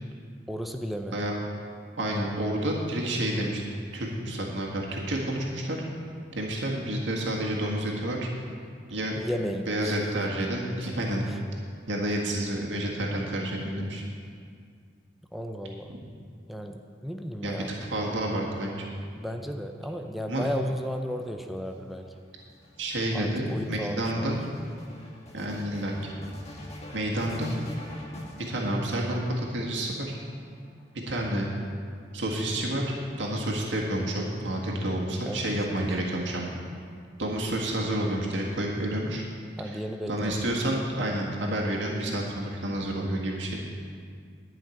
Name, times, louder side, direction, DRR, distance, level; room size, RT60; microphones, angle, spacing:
voice 1, 0.5-1.2 9.1-10.0 11.3-11.4 15.3-15.9 16.5-17.7 19.2-22.1 23.1-24.3 35.2-35.4 35.8-35.9 39.6-40.4, equal, ahead, 4 dB, 0.5 m, -34 dB
voice 2, 2.0-3.6 3.9-5.8 6.3-8.3 8.9-9.2 9.7-11.2 11.9-14.0 15.9-16.0 17.4-18.9 20.3-20.4 22.8-24.4 25.3-25.9 26.9-27.5 28.4-30.2 31.1-31.5 32.1-32.8 33.2-36.5 37.2-39.2 40.1-43.6, right 1 dB, 85° right, -2 dB, 1.7 m, -29 dB
sound 1, 21.4-29.4 30.2-31.1, left 1 dB, 35° left, 1.7 m, -46 dB
11.5 x 5.8 x 9.1 m, 2.2 s
head